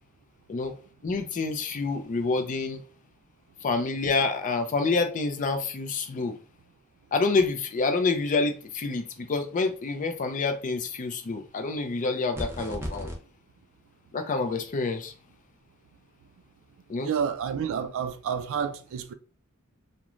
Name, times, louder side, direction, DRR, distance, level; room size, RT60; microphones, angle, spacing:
voice 1, 1.0-2.8 3.6-6.4 7.1-13.1 14.1-15.1 16.9-17.1, left 3 dB, 40° left, 0.4 m, -27 dB
sound 1, 12.3-13.2, equal, 10° right, 0.5 m, -34 dB
voice 2, 17.0-19.1, right 7 dB, 65° right, 0.3 m, -29 dB
3.0 x 2.1 x 2.4 m
head